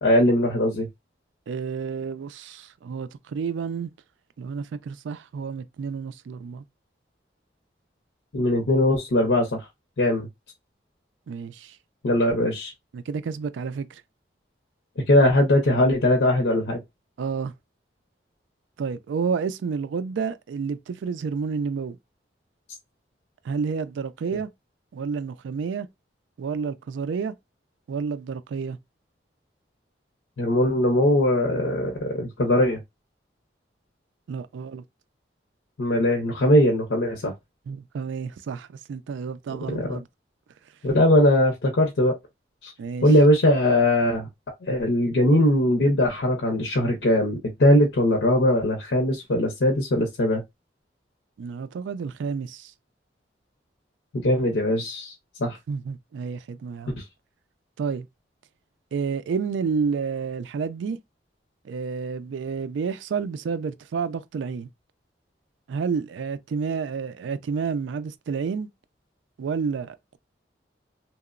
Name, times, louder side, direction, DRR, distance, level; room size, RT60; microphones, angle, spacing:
voice 1, 0.0-0.9 8.3-9.6 10.0-10.3 12.0-12.7 15.1-16.8 30.4-32.8 35.8-37.3 39.7-40.0 40.8-42.1 42.6-42.7 43.0-44.3 44.6-50.4 54.2-55.1 55.4-55.6, left 1 dB, 80° left, 0.6 m, -20 dB
voice 2, 1.5-3.9 4.4-6.6 11.3-11.8 12.9-14.0 17.2-17.5 18.8-22.0 23.4-24.5 24.9-25.9 26.4-27.3 27.9-28.8 34.3-34.8 37.7-40.1 42.8-43.1 51.4-52.7 55.7-57.0 57.8-58.1 58.9-61.0 61.6-64.7 65.7-68.7 69.4-70.2, right 5 dB, 85° right, 0.3 m, -30 dB
2.9 x 2.0 x 2.4 m
head